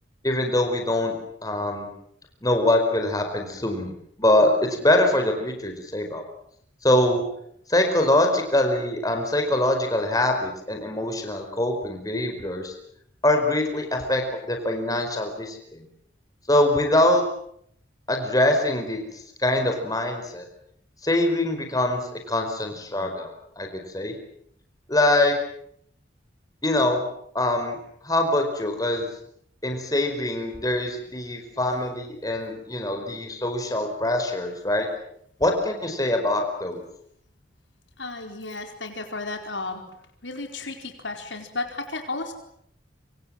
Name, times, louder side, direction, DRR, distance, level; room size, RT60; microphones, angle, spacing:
voice 1, 0.2-1.1 1.4-1.9 2.4-3.9 4.2-6.2 6.8-7.2 7.7-12.7 13.2-14.2 14.5-15.8 16.5-17.2 18.1-20.5 21.0-22.0 22.3-23.7 23.9-24.1 24.9-25.3 26.6-27.0 27.3-27.8 28.0-29.1 29.6-34.9 35.4-36.8, left 1 dB, 20° left, 4 dB, 4.8 m, -23 dB
voice 2, 38.0-39.8 40.2-42.3, left 3 dB, 85° left, 5 dB, 4.5 m, -33 dB
27.0 x 26.0 x 7.8 m, 0.69 s
head